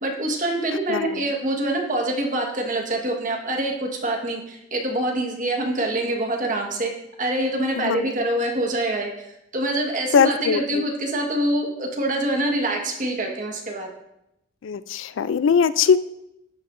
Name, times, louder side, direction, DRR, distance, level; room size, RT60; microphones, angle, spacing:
voice 1, 0.0-6.9 7.2-9.3 9.5-13.9, right 1 dB, 40° right, 1 dB, 1.5 m, -25 dB
voice 2, 0.9-1.2 7.8-8.1 10.1-10.8 14.6-16.0, left 6 dB, 75° left, 15 dB, 0.4 m, -20 dB
13.0 x 9.2 x 2.6 m, 0.84 s
head